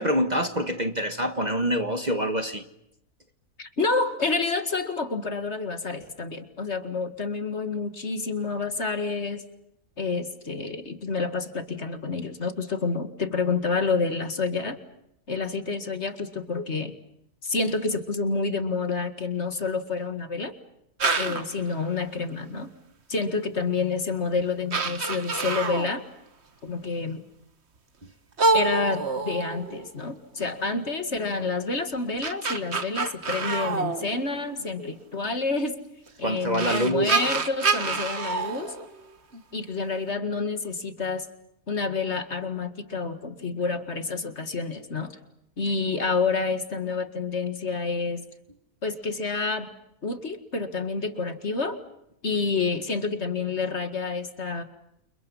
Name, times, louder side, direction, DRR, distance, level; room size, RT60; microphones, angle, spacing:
voice 1, 0.0-2.6 36.2-37.1, right 1 dB, 30° right, 1.4 m, -25 dB
voice 2, 3.6-9.4 10.0-14.8 15.3-17.0 17.4-20.5 21.2-22.7 23.1-26.0 26.6-27.2 28.5-35.8 36.2-38.7 39.5-41.3 41.7-45.2 45.6-48.2 48.8-49.7 50.0-51.8 52.2-54.6, left 4 dB, 45° left, 2.1 m, -28 dB
sound 1, 21.0-21.6 23.6-23.7 24.4-24.5 24.7-26.0 28.4-30.0 31.9-34.7 36.1-36.2 36.5-39.4, right 4 dB, 45° right, 1.9 m, -27 dB
29.5 x 29.0 x 5.6 m
omnidirectional pair, 1.6 m